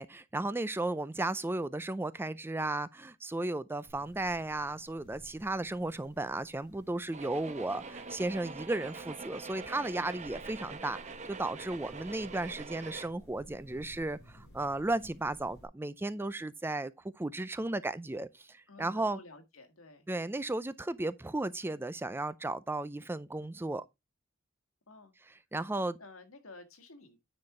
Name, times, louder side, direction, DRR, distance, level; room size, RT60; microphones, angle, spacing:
voice 1, 0.0-16.9 17.2-19.2 20.1-23.8 25.5-26.0, right 2 dB, 10° right, 0.4 m, -35 dB
sound 1, 3.8-15.7, equal, 55° left, 5.3 m, -57 dB
sound 2, 7.1-13.1, right 4 dB, 35° right, 0.9 m, -44 dB
voice 2, 18.7-20.1 24.9-25.1 26.0-27.2, left 3 dB, 75° left, 1.7 m, -52 dB
9.8 x 4.3 x 4.7 m
head